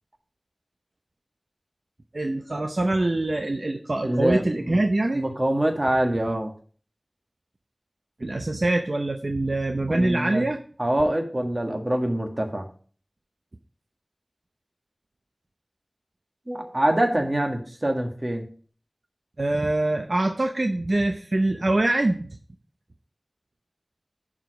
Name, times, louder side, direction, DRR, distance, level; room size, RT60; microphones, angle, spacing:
voice 1, 2.1-5.2 8.2-10.6 19.4-22.4, right 2 dB, 65° right, 4 dB, 0.7 m, -24 dB
voice 2, 4.0-4.8 5.1-6.5 9.9-10.5 10.8-12.7 16.5-18.5, right 1 dB, 40° right, 3 dB, 1.7 m, -25 dB
10.5 x 5.0 x 5.1 m, 0.44 s
wide cardioid pair, 50°, 0 cm